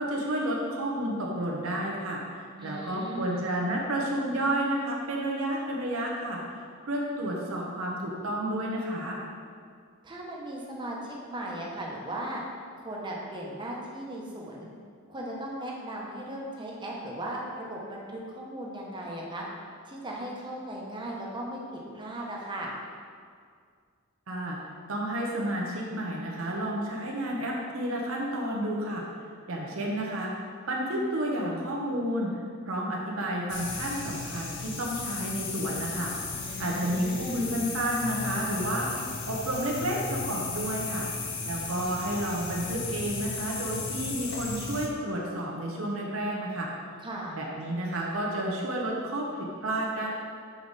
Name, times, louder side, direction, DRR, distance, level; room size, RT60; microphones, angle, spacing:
voice 1, 0.0-6.4 6.8-9.2 24.3-24.6 24.9-29.0 29.5-36.1 36.6-38.9 39.3-41.1 41.4-46.7 47.3-50.1, right 1 dB, 75° right, -2 dB, 0.9 m, -31 dB
voice 2, 2.5-3.4 10.0-12.4 12.8-14.7 15.1-19.4 19.8-22.7 36.4-37.4 47.0-47.4, right 1 dB, 25° right, -3 dB, 0.9 m, -37 dB
sound 1, 33.5-44.9, left 4 dB, 60° left, 0.7 m, -35 dB
5.5 x 4.7 x 4.0 m, 2.1 s
head